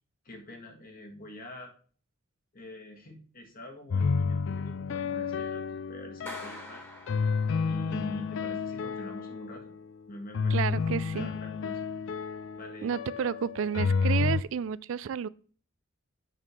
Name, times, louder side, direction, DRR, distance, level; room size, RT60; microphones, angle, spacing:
voice 1, 0.3-1.7 2.5-6.8 7.7-9.7 10.1-11.8 12.6-12.9, equal, 45° left, 1.7 m, -45 dB
sound 1, 3.9-6.6 7.1-9.7 10.3-14.4, left 5 dB, 65° left, 0.4 m, -30 dB
Clapping, 6.3-7.9, equal, 10° left, 1.6 m, -45 dB
voice 2, 10.5-11.3 12.8-15.3, right 7 dB, 65° right, 0.4 m, -31 dB
8.7 x 3.7 x 6.2 m
head